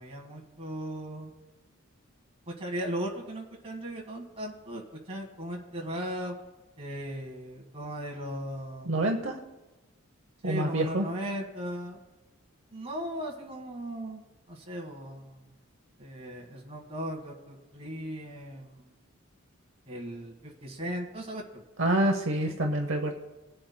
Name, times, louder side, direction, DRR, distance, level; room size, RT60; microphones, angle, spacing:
voice 1, 0.0-1.3 2.5-6.4 6.8-9.0 10.4-12.0 12.7-15.5 16.0-18.9 19.9-21.6 22.4-22.6, equal, 25° right, 0 dB, 1.6 m, -37 dB
voice 2, 8.9-9.4 10.4-11.1 21.8-23.1, right 1 dB, 60° right, 4 dB, 0.8 m, -27 dB
21.0 x 7.6 x 2.2 m, 1.1 s
head